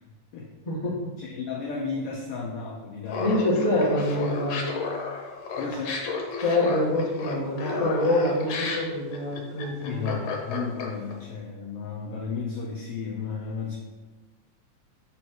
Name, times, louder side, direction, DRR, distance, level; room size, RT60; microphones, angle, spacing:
voice 1, 0.6-1.1 3.2-4.7 6.4-10.1, left 1 dB, 50° left, -4 dB, 0.4 m, -25 dB
voice 2, 1.2-3.3 5.6-6.0 9.8-13.8, left 5 dB, 80° left, -1 dB, 1.3 m, -33 dB
Laughter, 3.1-11.1, left 4 dB, 65° left, 1.9 m, -33 dB
7.8 x 4.2 x 4.5 m, 1.2 s
omnidirectional pair, 3.5 m